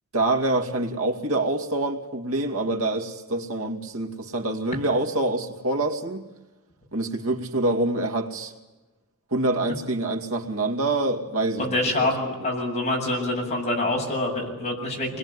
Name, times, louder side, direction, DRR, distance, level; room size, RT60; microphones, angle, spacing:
voice 1, 0.1-6.2 6.9-8.5 9.3-11.6 12.0-12.1, right 2 dB, 70° right, 3 dB, 2.4 m, -26 dB
voice 2, 11.6-15.2, left 1 dB, 30° left, 0 dB, 8.0 m, -26 dB
27.5 x 21.5 x 9.8 m, 1.1 s
head